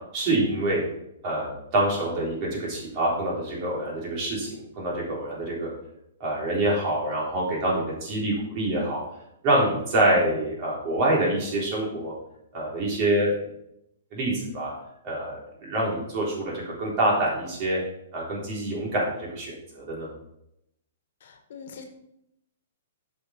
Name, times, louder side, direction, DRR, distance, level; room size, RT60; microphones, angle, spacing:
voice 1, 0.1-0.8 1.2-5.7 6.2-9.0 9.4-12.1 12.5-13.3 14.1-14.7 15.0-17.8 18.1-20.1, right 1 dB, 40° right, -4 dB, 3.6 m, -26 dB
voice 2, 21.2-21.8, left 6 dB, 65° left, 6 dB, 1.4 m, -43 dB
8.3 x 5.6 x 4.3 m, 0.79 s
hypercardioid pair, 140°, 0 cm